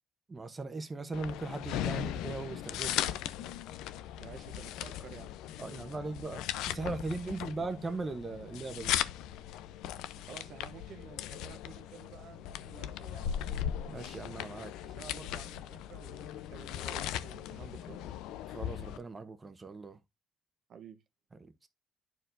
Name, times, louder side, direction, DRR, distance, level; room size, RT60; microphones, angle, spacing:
voice 1, 0.3-3.0 5.6-8.9 13.9-14.7 18.5-20.0 21.4-21.7, right 3 dB, 25° right, 1.0 m, -39 dB
sound 1, 1.1-19.0, left 11 dB, 85° left, 0.5 m, -38 dB
voice 2, 3.8-5.4 10.3-13.4 14.8-18.1 20.7-21.0, right 7 dB, 55° right, 0.8 m, -51 dB
10.5 x 4.6 x 2.6 m
cardioid pair, 105°, 0 cm